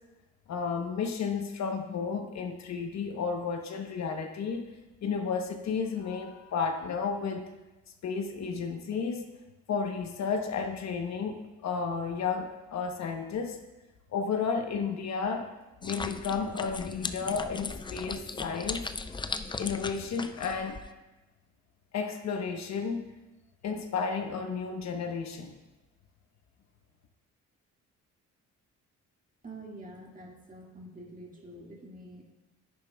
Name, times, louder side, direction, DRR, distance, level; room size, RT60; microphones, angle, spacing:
voice 1, 0.5-4.7 5.0-7.5 8.0-9.3 9.7-13.6 14.1-15.5 15.8-18.9 19.6-20.8 21.9-23.1 23.6-25.5, left 5 dB, 60° left, 4 dB, 1.0 m, -32 dB
sound 1, 15.8-20.9, left 4 dB, 15° left, 0.4 m, -37 dB
voice 2, 29.4-32.3, right 1 dB, 25° right, -1 dB, 2.0 m, -47 dB
10.5 x 10.0 x 2.3 m, 1.1 s
cardioid pair, 90°, 30 cm